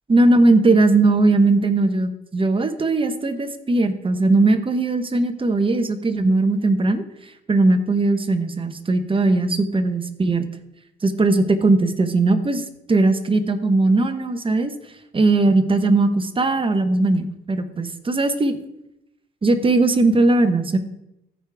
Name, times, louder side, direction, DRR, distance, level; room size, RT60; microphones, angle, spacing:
voice 1, 0.1-7.0 7.5-10.5 11.0-14.7 15.1-18.6 19.4-20.8, right 2 dB, 25° right, 8 dB, 1.0 m, -19 dB
14.5 x 5.0 x 3.5 m, 0.84 s
cardioid pair, 90°, 20 cm